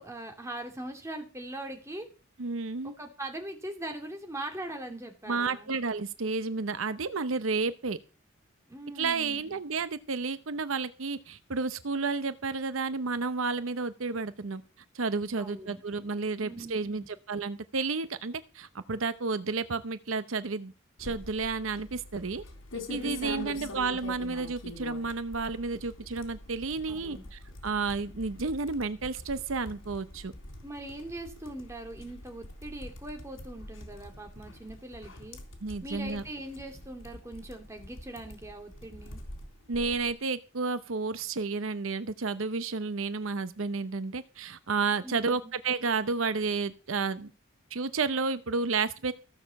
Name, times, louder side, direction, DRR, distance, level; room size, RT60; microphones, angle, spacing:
voice 1, 0.0-2.1 2.8-5.7 8.7-9.6 15.3-15.8 16.4-17.1 22.9-23.7 26.9-27.3 30.6-35.4 35.8-39.2 45.0-45.5, right 1 dB, 15° right, 3 dB, 2.8 m, -41 dB
voice 2, 2.4-2.9 5.3-8.0 9.0-14.6 14.9-20.7 21.0-22.4 22.9-30.3 35.6-36.2 39.7-47.3 47.7-49.1, right 4 dB, 80° right, 13 dB, 0.8 m, -31 dB
sound 1, 21.0-40.1, left 1 dB, 85° left, 3.5 m, -45 dB
15.5 x 6.7 x 7.0 m, 0.33 s
head